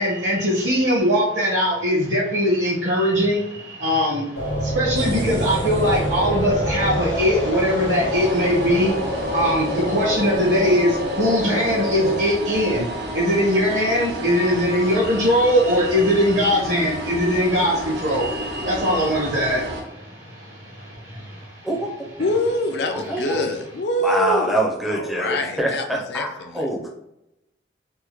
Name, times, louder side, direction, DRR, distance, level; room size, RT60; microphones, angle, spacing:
voice 1, 0.0-21.7 22.2-22.3 23.0-23.3, equal, 75° right, 1.1 m, -21 dB
sound 1, 4.4-12.2, left 1 dB, 80° left, 1.0 m, -27 dB
sound 2, 5.0-19.8, equal, 60° right, 0.5 m, -31 dB
voice 2, 21.6-22.2 22.9-23.4 24.0-26.9, right 1 dB, ahead, 0.5 m, -25 dB
voice 3, 22.2-24.6 24.9-26.7, left 1 dB, 60° left, 0.4 m, -25 dB
3.4 x 2.1 x 3.0 m
head